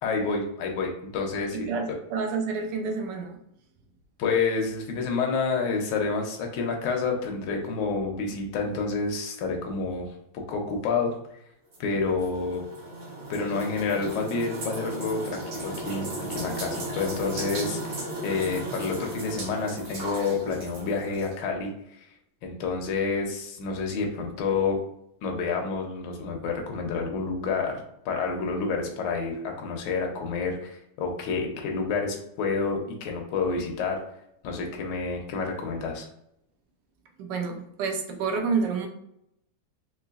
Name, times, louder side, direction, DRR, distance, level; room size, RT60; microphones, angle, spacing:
voice 1, 0.0-1.7 4.2-10.1 10.5-11.1 11.8-12.6 13.3-22.0 22.4-24.8 25.2-34.0 34.4-36.1, left 4 dB, 75° left, 1 dB, 1.3 m, -29 dB
voice 2, 1.5-3.4 37.2-38.9, right 5 dB, 70° right, 4 dB, 1.2 m, -29 dB
sound 1, 11.7-21.3, right 1 dB, 50° right, 0.7 m, -35 dB
3.8 x 3.0 x 2.3 m, 0.77 s
omnidirectional pair, 2.1 m